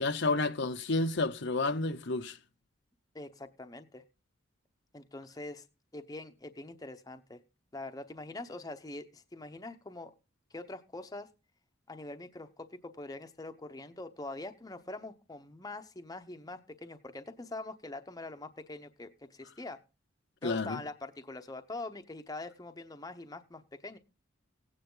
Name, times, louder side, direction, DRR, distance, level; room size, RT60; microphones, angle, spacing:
voice 1, 0.0-2.4 20.4-20.8, left 3 dB, 60° left, 0.8 m, -30 dB
voice 2, 3.1-4.0 4.9-5.6 5.9-7.4 7.7-10.1 10.5-11.3 11.9-19.8 20.4-24.0, left 2 dB, 20° left, 0.9 m, -44 dB
16.5 x 9.4 x 3.8 m
head